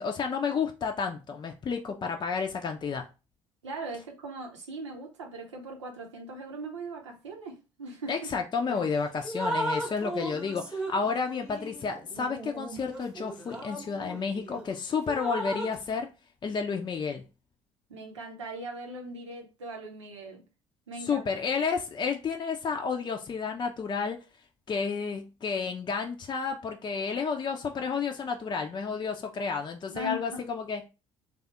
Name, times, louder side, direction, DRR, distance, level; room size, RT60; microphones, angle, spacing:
voice 1, 0.0-3.1 8.1-16.1 16.4-17.2 21.0-24.2 24.7-30.9, left 5 dB, 30° left, 0.6 m, -31 dB
voice 2, 3.6-8.3 17.9-20.4 20.9-21.3 29.9-30.4, right 1 dB, 80° right, 0.8 m, -40 dB
Drip, 8.7-8.9 9.2-14.6 15.1-15.8, right 1 dB, 5° right, 1.0 m, -36 dB
3.3 x 2.4 x 4.3 m
figure-of-eight pair, 50°, 15 cm